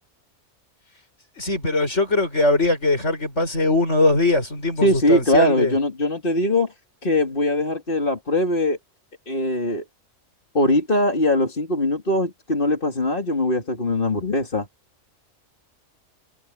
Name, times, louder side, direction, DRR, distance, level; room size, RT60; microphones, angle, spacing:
voice 1, 1.4-5.7, left 2 dB, 55° left, 6.6 m, -21 dB
voice 2, 4.8-6.7 7.0-8.8 9.3-9.8 10.5-14.7, left 1 dB, 40° left, 2.9 m, -21 dB
omnidirectional pair, 1.5 m